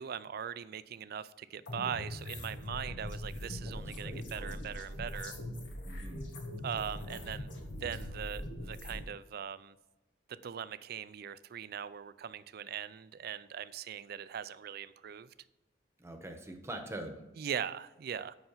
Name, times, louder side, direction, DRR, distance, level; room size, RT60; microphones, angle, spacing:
voice 1, 0.0-5.4 6.6-7.5 7.8-9.8 10.3-15.3 17.4-18.4, right 8 dB, 60° right, 0.4 m, -40 dB
sound 1, 1.7-9.0, left 1 dB, 85° left, 1.5 m, -41 dB
voice 2, 3.6-4.3 5.8-6.3 16.0-17.2, right 1 dB, 15° right, 1.1 m, -44 dB
7.8 x 5.7 x 5.6 m
head